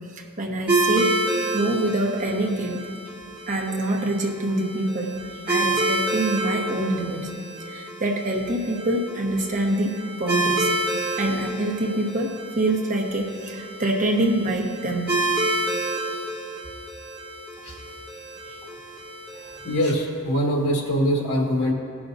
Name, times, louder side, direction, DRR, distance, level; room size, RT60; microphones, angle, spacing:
voice 1, 0.1-2.8 3.5-5.1 5.5-7.3 7.6-10.7 11.0-15.1, right 1 dB, 35° right, 0 dB, 1.0 m, -25 dB
sound 1, 0.7-19.8, right 2 dB, 5° right, 2.1 m, -29 dB
voice 2, 19.6-21.7, equal, 70° left, -1 dB, 1.5 m, -23 dB
17.5 x 6.0 x 2.6 m, 2.5 s
head